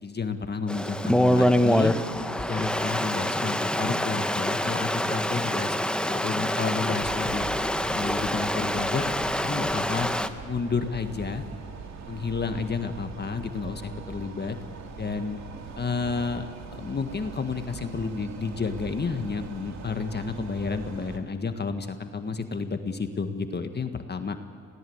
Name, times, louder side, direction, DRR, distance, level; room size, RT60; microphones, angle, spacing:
voice 1, 0.0-1.9 2.4-5.8 6.1-7.5 7.9-9.0 9.4-10.1 10.4-11.4 12.1-14.6 15.0-15.4 15.8-24.4, left 4 dB, 30° left, 7 dB, 1.7 m, -31 dB
Stream, 0.7-10.3, left 1 dB, 5° left, 1.3 m, -26 dB
sound 1, 7.0-21.2, right 5 dB, 55° right, 2.6 m, -41 dB
27.5 x 18.0 x 8.1 m, 2.2 s
supercardioid pair, 70°, 33 cm